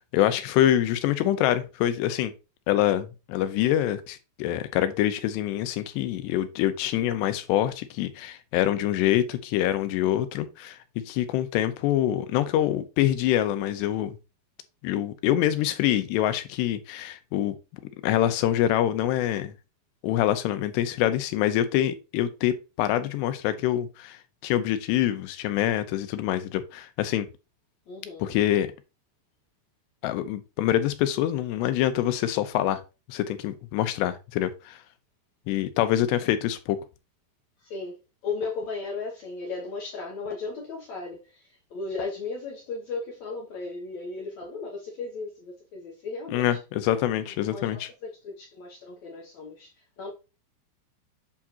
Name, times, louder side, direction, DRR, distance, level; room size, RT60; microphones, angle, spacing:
voice 1, 0.1-2.3 2.7-10.8 11.1-14.2 14.8-17.6 18.0-19.5 20.0-27.3 28.2-28.7 30.0-32.8 33.1-34.8 35.5-36.8 46.3-47.9, left 12 dB, 90° left, 2.9 m, -25 dB
voice 2, 27.9-28.3 37.6-46.5 47.5-49.7 50.0-50.1, left 4 dB, 65° left, 1.8 m, -36 dB
8.4 x 4.6 x 2.8 m
omnidirectional pair, 4.8 m